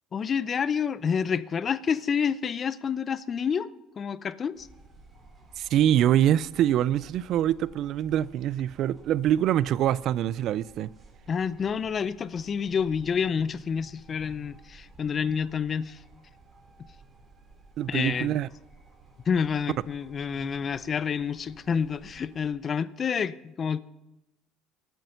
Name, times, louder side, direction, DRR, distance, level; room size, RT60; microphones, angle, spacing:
voice 1, 0.1-3.7 4.0-4.7 11.3-16.0 17.9-18.4 19.3-23.8, left 6 dB, 35° left, 0.6 m, -28 dB
sound 1, 4.5-22.5, right 3 dB, 25° right, 4.1 m, -54 dB
voice 2, 5.6-10.9 17.8-18.5, right 11 dB, 60° right, 0.4 m, -24 dB
18.0 x 9.2 x 5.7 m
supercardioid pair, 95°, 0 cm